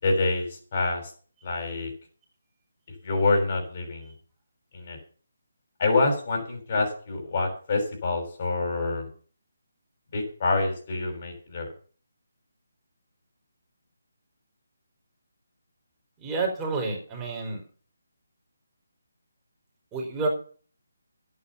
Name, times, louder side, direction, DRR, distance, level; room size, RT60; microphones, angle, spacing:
voice 1, 0.0-1.1 1.4-1.9 3.0-4.1 4.7-5.0 5.8-9.1 10.1-11.7, left 3 dB, 45° left, 2 dB, 6.0 m, -26 dB
voice 2, 16.2-17.6 19.9-20.3, right 3 dB, 15° right, -1 dB, 4.5 m, -29 dB
11.0 x 9.5 x 6.9 m, 0.42 s
figure-of-eight pair, 155°, 0 cm